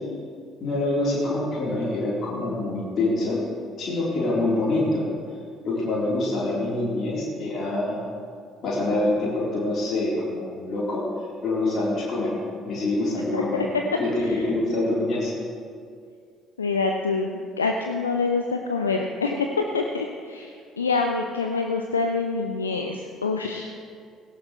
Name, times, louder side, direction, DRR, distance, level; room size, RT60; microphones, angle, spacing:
voice 1, 0.6-3.4 3.8-5.1 5.6-8.0 8.6-11.0 11.4-12.3 12.6-13.6 14.0-15.3, left 2 dB, 45° left, -6 dB, 3.8 m, -25 dB
voice 2, 13.3-13.7 14.2-14.4 16.6-20.5 20.8-23.7, left 4 dB, 80° left, 4 dB, 0.5 m, -26 dB
17.5 x 16.0 x 3.3 m, 2.2 s
figure-of-eight pair, 50°, 0 cm